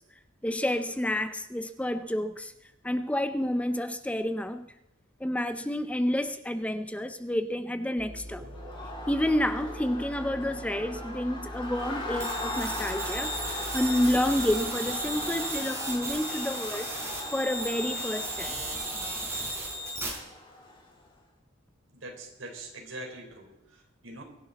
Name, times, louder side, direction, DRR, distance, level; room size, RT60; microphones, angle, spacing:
voice 1, 0.4-2.5 2.8-4.7 5.2-8.4 9.1-16.9 17.3-18.6, left 1 dB, 5° left, 0.5 m, -29 dB
sound 1, 8.0-14.6, equal, 45° right, 2.5 m, -42 dB
Crowd, 8.4-21.0, left 2 dB, 25° left, 3.9 m, -39 dB
sound 2, 12.2-20.1, right 1 dB, 15° right, 4.9 m, -35 dB
voice 2, 21.9-24.2, right 1 dB, 75° right, 4.2 m, -43 dB
23.0 x 11.0 x 4.1 m
head